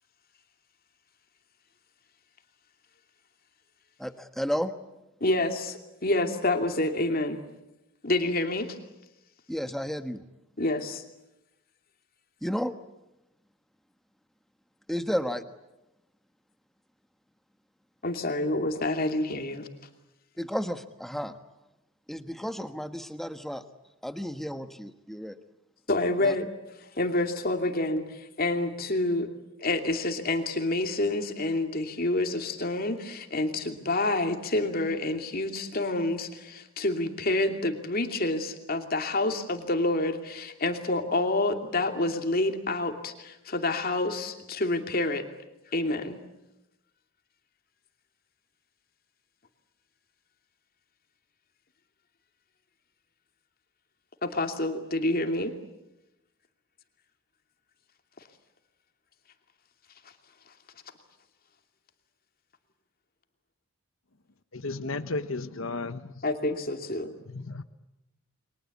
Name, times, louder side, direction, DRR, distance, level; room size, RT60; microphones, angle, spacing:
voice 1, 4.0-4.7 9.5-10.2 12.4-12.7 14.9-15.4 20.4-21.4 22.1-23.6 24.0-25.4 26.2-26.3, equal, ahead, 1.2 m, -32 dB
voice 2, 5.2-7.4 8.0-8.7 10.6-11.0 18.0-19.7 25.9-26.5 27.0-29.3 29.6-45.2 45.7-46.2 54.2-55.5 66.2-67.2, left 2 dB, 45° left, 2.7 m, -28 dB
voice 3, 64.5-66.1 67.3-67.6, left 3 dB, 70° left, 1.1 m, -33 dB
29.5 x 23.5 x 8.5 m
head